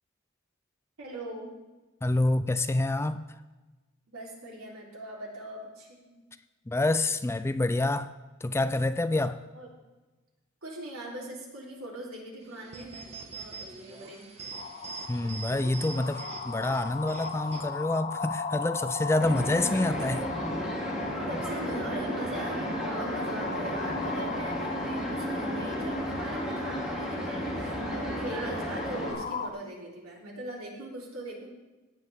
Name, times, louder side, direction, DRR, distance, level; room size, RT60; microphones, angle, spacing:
voice 1, 1.0-1.5 4.1-6.1 9.5-9.7 10.6-14.2 21.3-31.5, right 1 dB, 90° right, 3.4 m, -41 dB
voice 2, 2.0-3.2 6.7-8.1 8.4-9.4 15.1-20.3, left 2 dB, 10° left, 0.4 m, -27 dB
sound 1, 12.4-17.6, right 4 dB, 30° right, 1.3 m, -43 dB
sound 2, 14.5-29.5, left 5 dB, 40° left, 0.7 m, -38 dB
sound 3, 19.2-29.1, equal, 5° right, 2.5 m, -33 dB
16.5 x 9.7 x 3.5 m
head